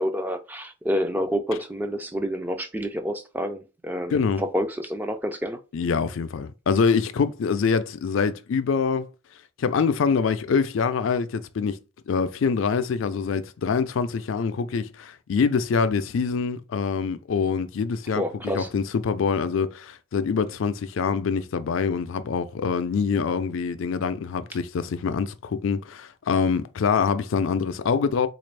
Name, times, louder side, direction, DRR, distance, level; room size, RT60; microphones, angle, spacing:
voice 1, 0.0-5.6 18.1-18.7, equal, 10° right, 0.3 m, -28 dB
voice 2, 4.1-4.4 5.7-9.1 9.6-11.8 12.1-18.2 18.5-28.3, left 5 dB, 70° left, 0.4 m, -25 dB
3.8 x 2.5 x 3.2 m
head